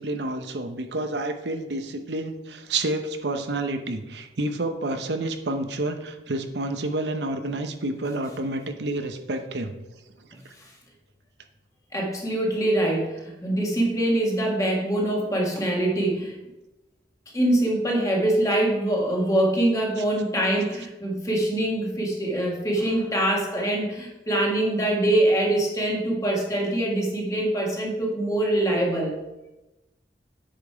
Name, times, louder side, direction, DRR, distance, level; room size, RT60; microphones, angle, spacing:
voice 1, 0.0-9.7, right 2 dB, 75° right, 7 dB, 0.8 m, -29 dB
voice 2, 11.9-16.4 17.3-29.2, right 1 dB, 20° left, -1 dB, 1.6 m, -24 dB
8.8 x 5.2 x 4.7 m, 0.99 s
head